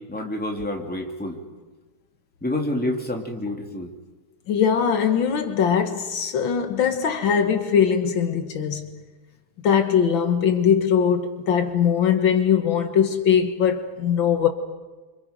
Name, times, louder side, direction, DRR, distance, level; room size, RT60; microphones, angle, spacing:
voice 1, 0.1-1.4 2.4-3.9, left 1 dB, 5° left, 2.4 m, -28 dB
voice 2, 4.5-9.0 9.6-14.5, left 7 dB, 75° left, 2.1 m, -21 dB
30.0 x 26.0 x 5.2 m
omnidirectional pair, 2.2 m